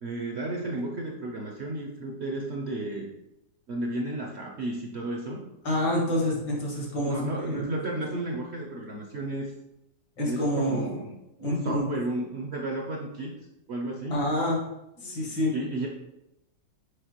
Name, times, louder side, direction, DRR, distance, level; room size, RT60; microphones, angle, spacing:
voice 1, 0.0-3.1 3.7-5.4 7.0-9.5 10.2-11.1 11.4-13.3 13.7-14.3 15.0-15.3 15.5-15.9, right 2 dB, 60° right, -1 dB, 0.7 m, -33 dB
voice 2, 5.6-7.6 10.2-10.8 11.4-11.9 14.1-14.6 15.0-15.5, left 1 dB, 75° left, -3 dB, 2.4 m, -27 dB
6.4 x 4.9 x 3.0 m, 0.89 s
omnidirectional pair, 1.9 m